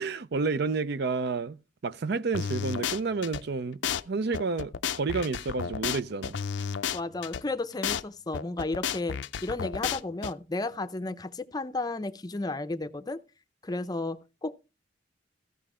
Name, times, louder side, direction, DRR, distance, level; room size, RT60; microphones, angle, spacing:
voice 1, 0.0-1.6 1.8-3.8 4.1-6.4, right 4 dB, 55° right, 0.5 m, -30 dB
sound 1, 2.3-3.4 3.8-4.0 4.3-7.4 7.8-8.0 8.3-10.3, left 7 dB, 65° left, 0.5 m, -32 dB
voice 2, 6.9-13.2 13.6-14.6, left 2 dB, 20° left, 0.5 m, -33 dB
15.0 x 5.5 x 4.9 m
head